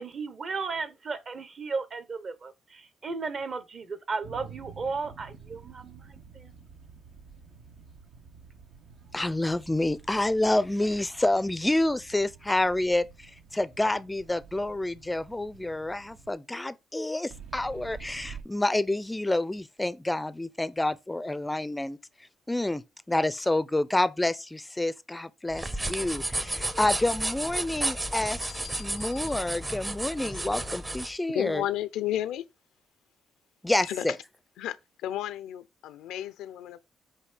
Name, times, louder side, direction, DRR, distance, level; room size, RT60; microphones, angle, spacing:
voice 1, 0.0-6.1 6.3-6.5, right 4 dB, 45° right, 1.1 m, -35 dB
sound 1, 4.2-16.3 17.3-18.4, right 6 dB, 75° right, 1.3 m, -49 dB
voice 2, 9.1-22.0 22.5-22.8 23.1-31.6 33.6-34.2, left 1 dB, 10° left, 0.5 m, -28 dB
sound 2, 25.5-31.1, right 1 dB, 20° right, 0.7 m, -32 dB
voice 3, 28.4-29.2 31.3-32.4 33.8-34.0 34.6-34.8 35.0-36.8, left 12 dB, 90° left, 0.6 m, -33 dB
8.3 x 2.8 x 5.0 m
cardioid pair, 90°, 0 cm